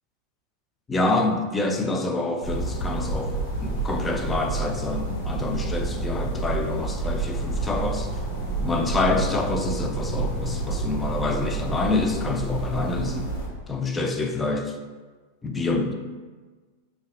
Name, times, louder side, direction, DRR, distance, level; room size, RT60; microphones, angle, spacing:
voice 1, 0.9-8.1 8.6-13.3 13.7-14.8 15.4-15.9, left 2 dB, 15° left, 4 dB, 0.3 m, -27 dB
sound 1, 2.4-13.5, right 3 dB, 40° left, 1.1 m, -29 dB
4.5 x 2.2 x 2.3 m, 1.4 s
figure-of-eight pair, 90°, 0 cm